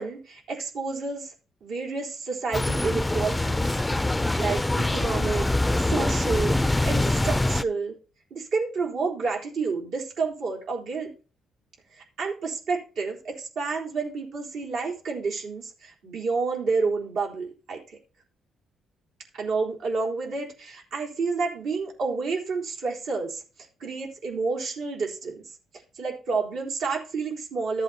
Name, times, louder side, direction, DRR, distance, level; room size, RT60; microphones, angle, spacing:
voice 1, 0.0-1.3 1.6-3.8 4.2-5.5 5.8-6.6 6.8-8.0 8.3-11.1 11.9-18.0 19.3-23.4 23.8-25.4 25.9-27.8, right 4 dB, 80° right, -3 dB, 3.9 m, -30 dB
sound 1, 2.5-7.6, left 2 dB, 10° left, 0.4 m, -24 dB
14.0 x 7.9 x 2.9 m, 0.36 s
cardioid pair, 90°, 0 cm